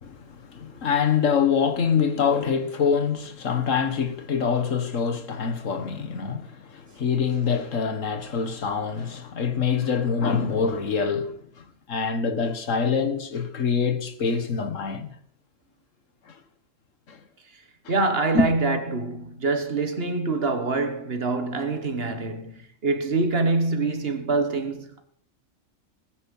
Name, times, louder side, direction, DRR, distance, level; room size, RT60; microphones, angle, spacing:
voice 1, 0.0-15.1 16.3-16.4 17.1-17.2 17.8-17.9 18.3-18.5, left 6 dB, 80° left, 1.7 m, -25 dB
voice 2, 17.9-25.0, right 3 dB, 50° right, 1.6 m, -25 dB
20.0 x 9.6 x 5.5 m
omnidirectional pair, 1.3 m